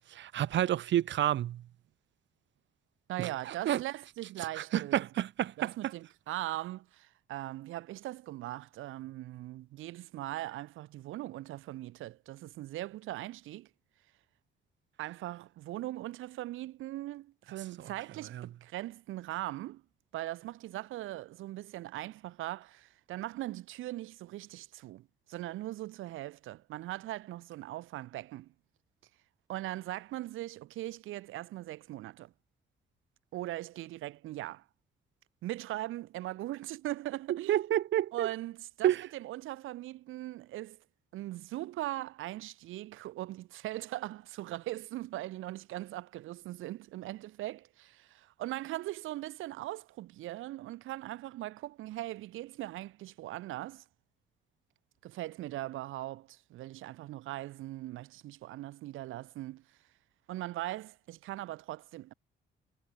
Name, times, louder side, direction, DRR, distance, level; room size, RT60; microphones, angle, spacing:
voice 1, 0.1-1.6 3.2-3.8 4.4-5.9 17.8-17.9 18.3-18.5 37.3-38.3 38.8-39.1, right 12 dB, 65° right, 1.1 m, -30 dB
voice 2, 3.1-5.0 5.6-13.7 15.0-19.8 20.1-28.5 29.5-32.3 33.3-34.6 35.4-37.6 38.1-40.8 41.1-53.8 55.0-59.6 60.3-62.1, right 16 dB, 90° right, 2.6 m, -40 dB
cardioid pair, 90°, 20 cm